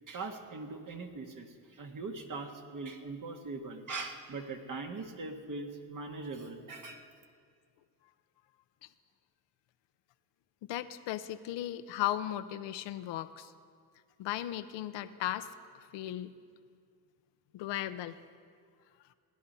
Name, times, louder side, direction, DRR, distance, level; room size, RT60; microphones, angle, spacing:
voice 1, 0.1-7.1, right 3 dB, 45° right, 4 dB, 1.6 m, -41 dB
voice 2, 10.7-13.5 14.2-15.5 15.7-16.3 17.5-18.2, left 13 dB, 75° left, 11 dB, 0.7 m, -36 dB
16.0 x 10.5 x 5.5 m, 2.1 s
supercardioid pair, 70°, 43 cm